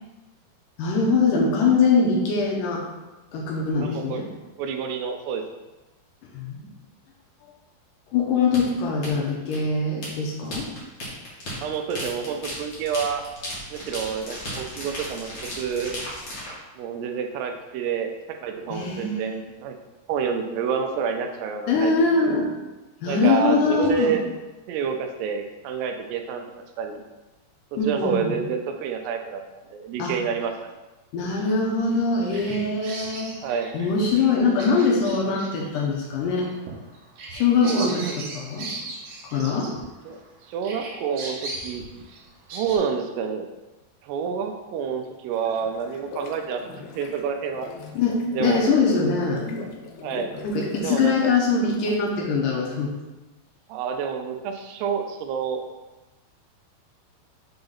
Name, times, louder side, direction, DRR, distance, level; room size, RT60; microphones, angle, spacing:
voice 1, 0.8-2.8 3.3-4.3 6.2-6.7 8.1-10.7 18.7-19.4 21.7-22.5 23.0-24.2 27.8-28.4 30.0-30.2 31.1-33.4 33.7-36.5 37.3-38.7 39.3-39.7 47.9-49.5 50.4-52.9, left 4 dB, 70° left, -2 dB, 2.2 m, -23 dB
voice 2, 3.8-4.2 4.6-5.4 11.6-13.2 13.7-16.0 16.8-18.1 18.4-19.8 20.1-21.9 23.1-24.2 24.7-26.5 26.8-27.0 27.7-30.7 33.4-33.7 37.6-38.3 40.1-40.2 40.5-41.8 42.1-42.2 42.5-43.5 44.0-46.6 47.0-47.7 48.3-48.7 50.0-50.3 50.8-51.3 53.7-55.6, right 6 dB, 90° right, 5 dB, 2.8 m, -28 dB
sound 1, 8.5-16.5, equal, 55° left, 1.3 m, -35 dB
Bird vocalization bird call bird song, 31.9-40.3 40.6-42.8, right 2 dB, 65° right, 2.5 m, -38 dB
sound 2, 45.3-52.1, left 3 dB, 85° left, 2.7 m, -40 dB
6.9 x 3.9 x 4.0 m, 1.1 s
omnidirectional pair, 4.7 m